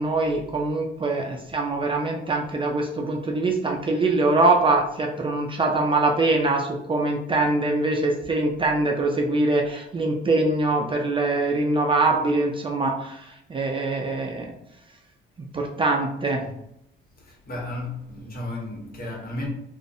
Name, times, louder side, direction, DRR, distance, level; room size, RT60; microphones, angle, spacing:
voice 1, 0.0-14.5 15.5-16.4, right 2 dB, 25° right, 0.3 m, -23 dB
voice 2, 17.2-19.5, left 2 dB, 50° left, 0.9 m, -34 dB
2.4 x 2.1 x 2.5 m
cardioid pair, 90°, 20 cm